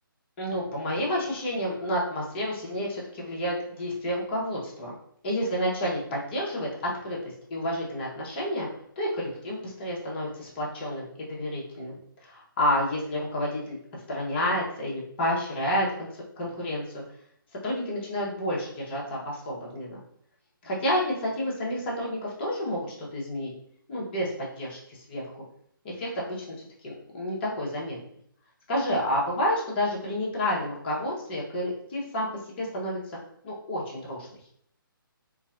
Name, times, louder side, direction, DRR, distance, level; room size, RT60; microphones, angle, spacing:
voice 1, 0.4-4.9 5.2-8.7 9.0-13.8 14.1-16.1 16.4-17.0 17.6-20.0 20.6-23.5 23.9-24.3 24.6-24.8 25.1-25.2 25.8-26.5 26.8-28.0 28.7-32.3 32.6-33.0 33.4-34.4, equal, 30° left, -4 dB, 0.9 m, -30 dB
3.0 x 2.6 x 2.5 m, 0.67 s
figure-of-eight pair, 145°, 12 cm